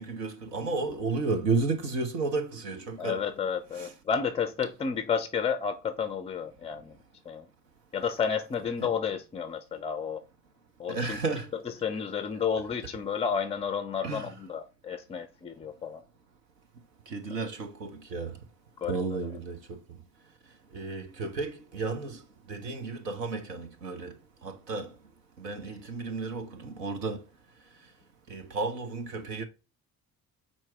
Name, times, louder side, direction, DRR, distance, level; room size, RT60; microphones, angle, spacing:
voice 1, 0.0-3.3 3.7-3.9 8.8-8.9 10.9-11.5 14.0-14.3 17.1-18.4 18.9-19.8 20.7-22.2 22.5-25.0 25.4-27.2 28.3-29.4, right 3 dB, 80° right, 1.0 m, -33 dB
voice 2, 3.0-7.0 7.3-7.5 7.9-10.2 10.8-11.2 11.8-16.0 18.8-19.0, left 6 dB, 15° left, 0.3 m, -31 dB
4.4 x 4.2 x 5.7 m
figure-of-eight pair, 45°, 48 cm